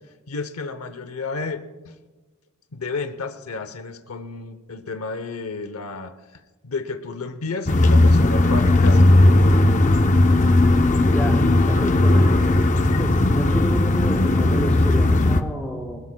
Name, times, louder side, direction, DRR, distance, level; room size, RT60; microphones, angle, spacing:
voice 1, 0.3-1.9 2.7-9.0, left 3 dB, 85° left, 10 dB, 0.8 m, -32 dB
sound 1, 7.7-15.4, left 2 dB, 35° left, 0.6 m, -16 dB
voice 2, 11.1-12.5 13.0-16.0, equal, 5° left, -3 dB, 3.6 m, -29 dB
20.5 x 20.5 x 2.2 m, 1.3 s
head